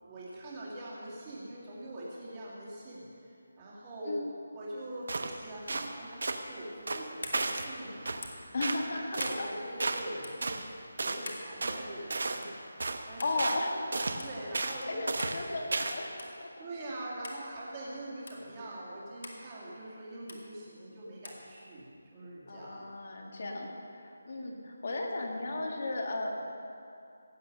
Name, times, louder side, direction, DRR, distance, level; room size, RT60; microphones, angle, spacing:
voice 1, 0.0-5.1 5.4-8.1 8.9-13.5 14.2-15.3 16.6-22.9 23.4-23.7, right 1 dB, 15° right, -6 dB, 2.2 m, -43 dB
sound 1, 5.1-5.4 5.7-5.9 6.2-6.4 6.9-7.7 8.1-8.2 8.6-8.8 9.1-9.4 9.8-10.1 10.4-10.6 11.0-11.2 11.6-11.8 12.1-12.5 12.8-13.0 13.4-13.7 13.9-14.2 14.5-14.8 15.1-15.4 15.7-16.0, right 3 dB, 55° right, 1.0 m, -33 dB
sound 2, 6.2-6.5 7.2-7.4 8.2-8.5 9.2-9.4 10.2-10.4 11.3-11.5 12.2-12.4 13.2-13.4 14.2-14.3 15.2-15.4 16.2-16.4 17.2-17.4 18.3-18.4 19.2-19.4 20.3-20.4 21.2-21.4, left 2 dB, 55° left, 2.2 m, -43 dB
voice 2, 8.5-9.5 12.8-14.1 14.6-16.5 22.5-26.3, left 2 dB, 40° left, 1 dB, 1.8 m, -35 dB
17.0 x 9.0 x 6.5 m, 2.6 s
figure-of-eight pair, 180°, 0 cm